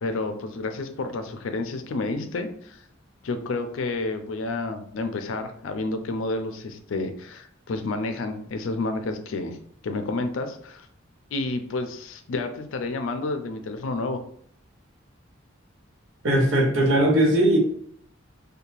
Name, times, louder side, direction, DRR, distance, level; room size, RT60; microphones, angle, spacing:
voice 1, 0.0-2.8 3.2-9.6 9.8-10.9 11.3-14.2, left 2 dB, 75° left, 7 dB, 0.4 m, -30 dB
voice 2, 16.2-17.6, right 1 dB, 70° right, -1 dB, 0.8 m, -19 dB
2.7 x 2.2 x 2.9 m, 0.63 s
head